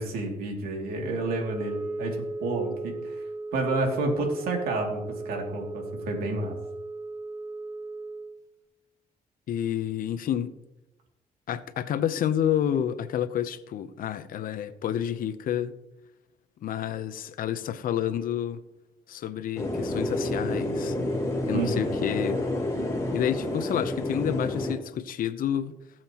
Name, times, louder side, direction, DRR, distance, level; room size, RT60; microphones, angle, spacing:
voice 1, 0.0-3.1 3.5-6.6 21.5-21.8, right 2 dB, 85° right, 2.7 m, -30 dB
Wind instrument woodwind instrument, 1.2-8.4, right 3 dB, 25° right, 2.0 m, -37 dB
voice 2, 9.5-10.5 11.5-15.7 16.6-18.6 19.1-21.0 21.5-22.4 23.1-25.7, left 10 dB, 70° left, 0.8 m, -29 dB
sound 1, 19.6-24.7, left 1 dB, 20° left, 3.2 m, -29 dB
18.5 x 7.6 x 3.0 m
cardioid pair, 85°, 15 cm